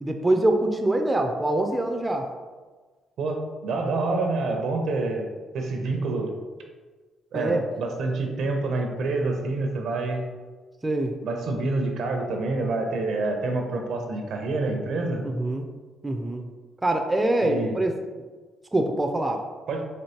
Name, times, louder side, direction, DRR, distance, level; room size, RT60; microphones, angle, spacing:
voice 1, 0.0-2.3 7.3-7.6 10.8-11.1 15.2-15.7 16.0-16.5 16.8-18.0 18.7-19.4, right 1 dB, 15° right, 4 dB, 0.4 m, -24 dB
voice 2, 3.2-6.3 7.3-10.3 11.2-15.2 17.4-17.8 19.7-19.8, right 3 dB, 75° right, 3 dB, 0.6 m, -27 dB
4.4 x 3.0 x 2.8 m, 1.4 s
cardioid pair, 90°, 0 cm